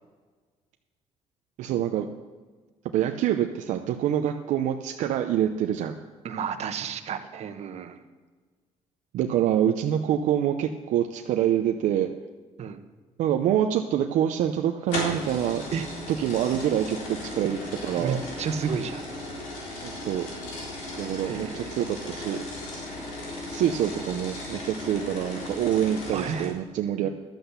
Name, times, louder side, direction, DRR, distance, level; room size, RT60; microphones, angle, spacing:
voice 1, 1.6-2.0 2.9-6.0 9.1-12.1 13.2-15.6 16.1-18.2 19.8-20.3 21.0-22.5 23.5-27.1, right 10 dB, 80° right, 5 dB, 0.7 m, -26 dB
voice 2, 6.2-8.0 12.6-12.8 15.7-15.9 18.0-19.0 21.3-21.8 26.1-26.5, right 7 dB, 60° right, 8 dB, 1.1 m, -31 dB
sound 1, 14.9-26.5, left 2 dB, 90° left, 3.7 m, -36 dB
12.0 x 8.0 x 6.8 m, 1.4 s
cardioid pair, 100°, 13 cm